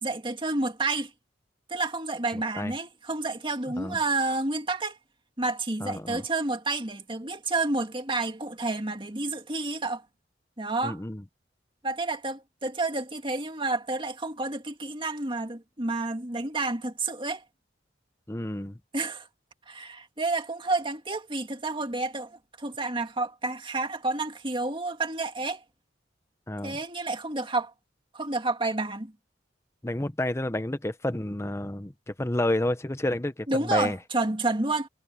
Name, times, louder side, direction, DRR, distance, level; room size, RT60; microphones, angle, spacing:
voice 1, 0.0-1.1 1.7-5.0 5.4-10.0 10.6-11.0 11.8-17.4 18.9-19.3 19.7-25.6 26.6-27.7 28.1-29.1 33.5-34.9, right 3 dB, 30° right, 2.2 m, -30 dB
voice 2, 2.3-2.7 3.8-4.0 5.8-6.2 10.8-11.2 18.3-18.8 26.5-26.8 29.8-34.0, left 1 dB, 15° left, 0.9 m, -30 dB
head